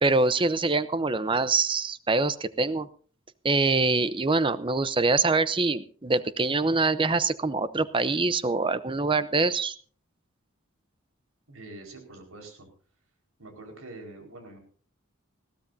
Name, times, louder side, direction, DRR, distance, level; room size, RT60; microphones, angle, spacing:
voice 1, 0.0-2.9 3.4-9.7, right 3 dB, 25° right, 15 dB, 0.7 m, -24 dB
voice 2, 11.5-12.7 13.4-14.6, right 2 dB, 85° right, 4 dB, 4.7 m, -45 dB
20.5 x 15.5 x 2.7 m, 0.43 s
head